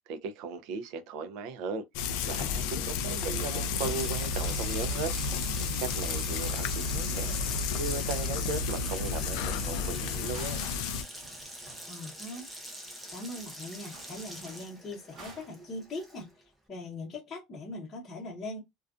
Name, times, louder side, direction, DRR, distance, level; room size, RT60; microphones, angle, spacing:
voice 1, 0.1-1.8 2.2-5.1 5.8-7.3 7.8-10.7, right 4 dB, 55° right, 0.4 m, -37 dB
Frying (food), 1.9-11.0, left 5 dB, 65° left, 0.3 m, -32 dB
Water tap faucet, 2.6-16.4, right 1 dB, 5° right, 0.5 m, -45 dB
sound 1, 5.8-6.4 6.8-7.8 9.9-12.1 12.4-12.5 13.1-13.2 13.3-15.7, right 2 dB, 25° right, 1.0 m, -53 dB
voice 2, 11.9-12.5 13.1-16.3 16.7-18.6, left 2 dB, 20° left, 0.9 m, -40 dB
2.4 x 2.2 x 2.4 m
cardioid pair, 170°, 0 cm